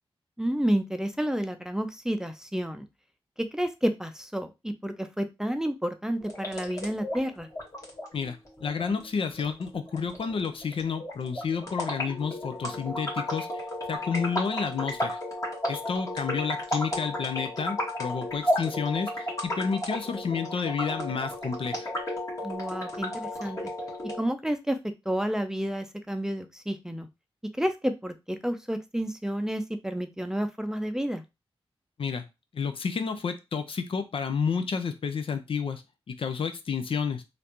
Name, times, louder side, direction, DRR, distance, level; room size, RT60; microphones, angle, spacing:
voice 1, 0.4-2.9 3.5-7.5 22.4-23.6 24.2-24.8 25.1-27.1 27.6-31.2, equal, 5° right, 7 dB, 0.5 m, -30 dB
sound 1, 6.2-24.2, left 1 dB, 35° left, 1.5 m, -33 dB
voice 2, 8.1-15.2 15.7-21.9 32.0-32.2 32.5-37.2, left 6 dB, 60° left, 8 dB, 0.5 m, -30 dB
3.2 x 2.5 x 2.9 m, 0.24 s
cardioid pair, 60°, 10 cm